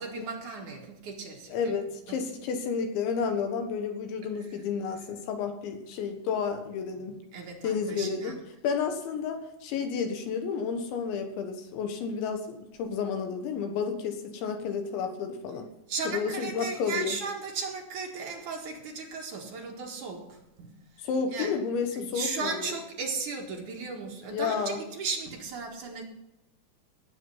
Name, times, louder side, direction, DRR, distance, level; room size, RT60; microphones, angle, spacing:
voice 1, 0.0-1.7 2.1-2.2 7.3-8.4 15.9-20.8 21.3-21.5 21.9-26.0, right 4 dB, 60° right, 0 dB, 2.2 m, -36 dB
voice 2, 1.5-7.2 7.6-8.3 8.6-15.7 16.1-17.2 21.0-22.7 24.3-24.8, left 6 dB, 70° left, 5 dB, 3.4 m, -31 dB
18.5 x 7.1 x 5.6 m, 0.88 s
omnidirectional pair, 5.8 m